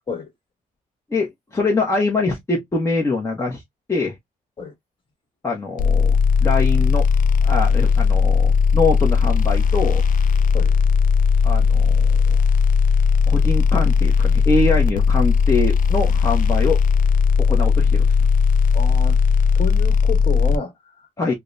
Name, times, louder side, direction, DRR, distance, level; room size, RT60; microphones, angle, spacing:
voice 1, 1.1-3.6 3.9-4.1 5.4-7.1 7.4-10.0 11.4-12.2 13.3-16.8 17.4-18.1 21.2-21.3, left 3 dB, 20° left, 1.0 m, -23 dB
sound 1, 5.8-20.6, left 5 dB, 60° left, 0.5 m, -17 dB
voice 2, 18.7-19.2 19.6-21.3, left 4 dB, 35° left, 1.7 m, -30 dB
4.8 x 2.3 x 2.5 m
cardioid pair, 140°, 16 cm